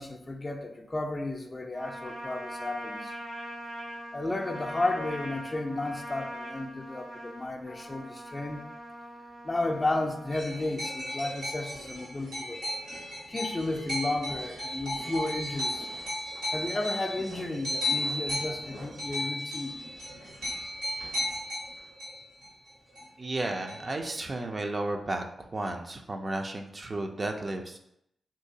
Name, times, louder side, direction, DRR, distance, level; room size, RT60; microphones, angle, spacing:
voice 1, 0.0-3.1 4.1-8.6 9.4-12.6 13.3-15.9 16.5-19.8, left 2 dB, 35° left, 4 dB, 0.4 m, -33 dB
Trumpet, 1.7-10.4, equal, 70° right, 1.2 m, -41 dB
sound 1, 10.3-23.0 23.3-24.4, left 1 dB, 85° right, 1.5 m, -35 dB
voice 2, 23.2-27.8, right 2 dB, 45° right, 3 dB, 0.4 m, -33 dB
3.0 x 2.7 x 2.7 m, 0.77 s
supercardioid pair, 40°, 0 cm